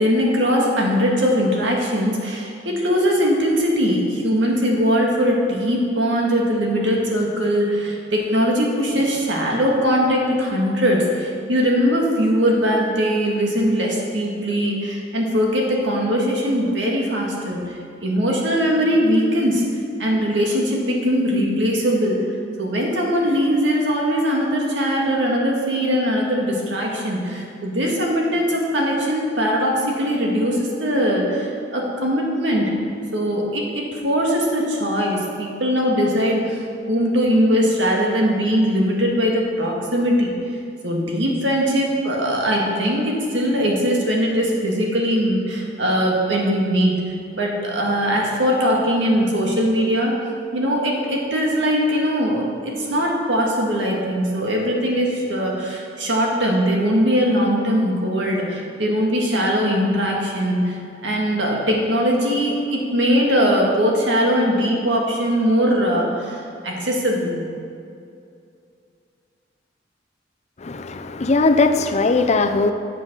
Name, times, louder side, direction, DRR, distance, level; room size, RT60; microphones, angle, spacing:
voice 1, 0.0-19.7 20.0-22.2 22.6-32.7 33.1-36.6 36.9-40.3 40.8-47.0 47.3-50.2 50.5-67.5, equal, 80° right, -1 dB, 1.8 m, -20 dB
voice 2, 70.6-72.7, left 3 dB, 40° left, 8 dB, 0.5 m, -19 dB
8.2 x 7.2 x 6.1 m, 2.5 s
head